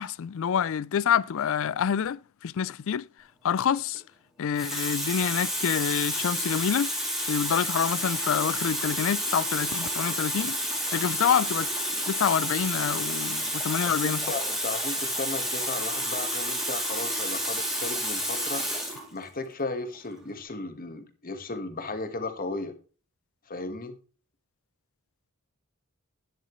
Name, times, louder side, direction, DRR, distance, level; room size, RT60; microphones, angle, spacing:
voice 1, 0.0-3.1 3.4-4.0 4.4-6.9 7.3-10.6 10.9-11.7 12.1-14.2, left 8 dB, 65° left, 0.4 m, -27 dB
Water tap faucet, 3.7-4.0 4.6-19.1 19.9-20.1, equal, ahead, 2.8 m, -30 dB
voice 2, 13.8-22.7 23.5-23.9, left 3 dB, 40° left, 1.5 m, -35 dB
12.0 x 10.5 x 3.1 m
head